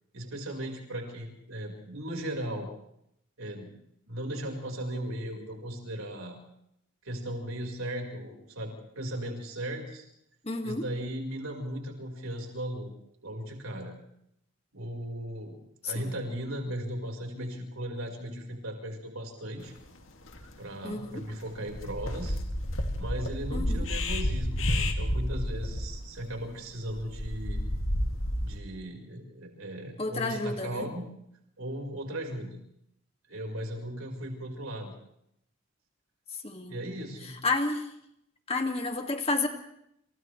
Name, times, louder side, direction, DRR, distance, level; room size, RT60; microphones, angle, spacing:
voice 1, 0.1-2.7 3.4-3.7 4.1-6.3 7.0-10.0 10.6-12.9 13.2-13.9 14.7-15.6 15.8-19.7 20.6-22.4 23.0-27.6 28.4-31.1 31.6-32.6 33.3-34.9 36.7-37.3, right 1 dB, 85° right, 2 dB, 4.9 m, -37 dB
voice 2, 10.4-10.9 15.8-16.1 20.8-21.2 23.5-23.9 30.0-30.9 36.4-36.8 37.4-37.9 38.5-39.5, left 3 dB, 30° left, 4 dB, 2.1 m, -31 dB
sound 1, 19.9-20.0 20.2-20.4 20.9-21.2 21.5-28.6, left 1 dB, 75° left, 2.3 m, -31 dB
29.0 x 28.0 x 3.3 m, 0.77 s
head